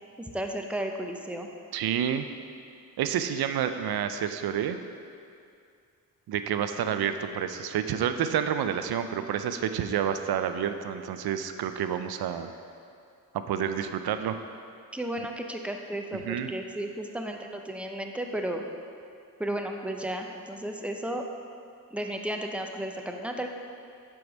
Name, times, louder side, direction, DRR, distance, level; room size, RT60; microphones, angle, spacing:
voice 1, 0.2-1.5 14.9-18.6 19.4-21.2 21.9-23.5, right 1 dB, 5° right, 3 dB, 0.7 m, -33 dB
voice 2, 1.7-2.3 3.0-4.8 6.3-12.5 13.3-14.4 16.2-16.5, right 9 dB, 90° right, 9 dB, 0.5 m, -29 dB
7.6 x 4.8 x 5.3 m, 2.4 s
cardioid pair, 65°, 36 cm